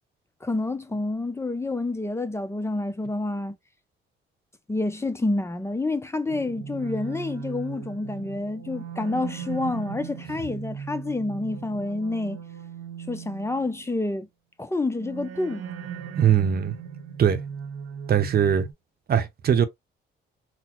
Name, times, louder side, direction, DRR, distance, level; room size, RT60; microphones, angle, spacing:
voice 1, 0.4-3.6 4.7-12.4 13.1-14.3 14.6-15.6, left 2 dB, 15° left, 0.6 m, -28 dB
sound 1, 6.3-13.9 15.0-18.7, right 7 dB, 80° right, 0.7 m, -38 dB
voice 2, 16.2-16.7 17.2-17.4 18.1-18.7 19.1-19.6, right 8 dB, 50° right, 0.8 m, -20 dB
3.9 x 2.1 x 3.0 m
cardioid pair, 90°, 20 cm